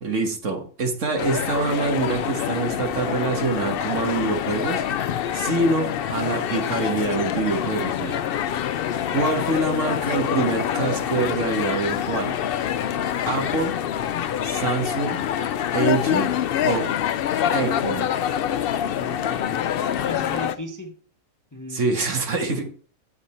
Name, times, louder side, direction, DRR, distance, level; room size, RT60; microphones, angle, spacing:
voice 1, 0.0-4.8 5.3-8.3 9.1-12.4 13.3-13.8 14.4-15.2 15.7-16.3 16.6-16.8 17.5-18.1 21.7-22.6, right 3 dB, 60° right, 3 dB, 1.8 m, -25 dB
sound 1, 1.2-20.6, left 10 dB, 70° left, 0.5 m, -26 dB
voice 2, 19.0-21.0 21.5-21.9, left 1 dB, 15° left, 4 dB, 0.7 m, -37 dB
8.4 x 7.0 x 4.4 m, 0.43 s
omnidirectional pair, 1.5 m